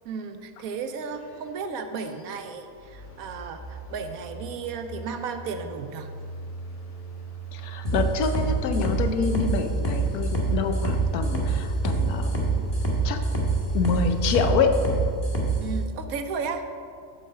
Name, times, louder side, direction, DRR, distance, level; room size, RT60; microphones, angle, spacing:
voice 1, 0.0-6.1 15.6-16.7, right 5 dB, 75° right, 8 dB, 1.1 m, -34 dB
sound 1, 0.7-14.7, right 1 dB, 40° left, 1.6 m, -37 dB
voice 2, 7.5-12.6 13.0-13.2 13.7-14.8, left 6 dB, 85° left, 7 dB, 1.2 m, -27 dB
sound 2, 7.8-15.6, right 3 dB, 20° left, 1.2 m, -25 dB
7.6 x 5.1 x 6.5 m, 2.3 s
omnidirectional pair, 1.5 m